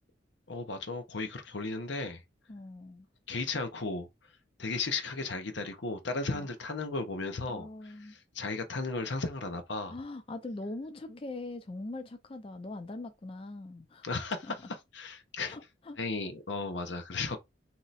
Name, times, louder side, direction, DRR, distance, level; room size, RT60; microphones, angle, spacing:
voice 1, 0.5-2.2 3.3-4.1 4.6-9.9 14.0-14.5 14.9-15.6 16.0-17.4, left 3 dB, 80° left, 0.9 m, -35 dB
voice 2, 2.5-3.1 6.3-6.5 7.5-8.1 9.9-14.1 14.4-14.5 15.5-16.0 17.3-17.4, left 2 dB, 30° left, 0.4 m, -42 dB
3.1 x 2.9 x 4.1 m
head